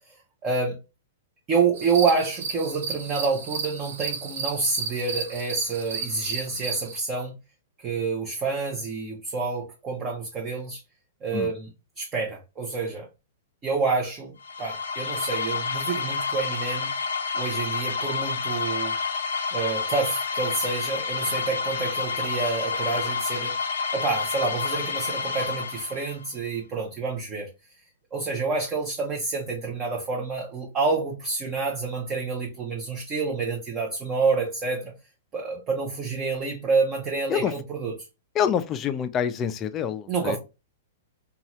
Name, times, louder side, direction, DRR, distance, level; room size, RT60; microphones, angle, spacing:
voice 1, 0.4-0.8 1.5-7.3 7.8-10.8 11.2-11.7 12.0-13.1 13.6-14.3 14.6-16.9 17.3-18.9 19.5-27.5 28.1-34.9 35.3-37.9 40.1-40.4, right 4 dB, 30° right, 0.7 m, -28 dB
sound 1, 1.8-7.0, right 5 dB, 70° right, 0.6 m, -33 dB
sound 2, 14.4-26.3, left 5 dB, 85° left, 0.5 m, -29 dB
voice 2, 38.4-40.4, left 8 dB, 25° left, 0.3 m, -26 dB
2.7 x 2.3 x 2.9 m
hypercardioid pair, 130°, 0 cm